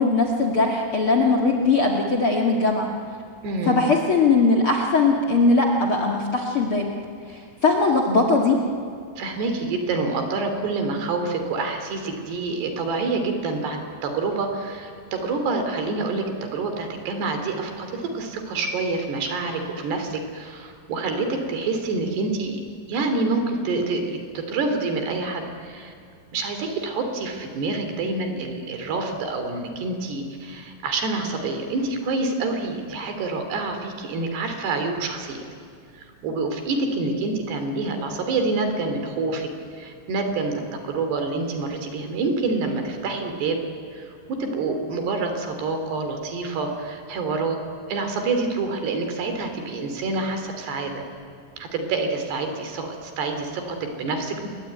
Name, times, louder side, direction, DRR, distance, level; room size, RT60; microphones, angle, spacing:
voice 1, 0.0-2.9 3.7-6.9 7.3-8.6, left 3 dB, 45° left, 2 dB, 1.9 m, -20 dB
voice 2, 3.4-3.8 9.2-22.6 22.9-25.9 26.3-35.4 35.9-43.6 43.9-47.6 47.9-51.0 51.6-54.5, right 3 dB, 70° right, 6 dB, 5.0 m, -27 dB
28.0 x 22.5 x 9.4 m, 2.3 s
omnidirectional pair, 5.0 m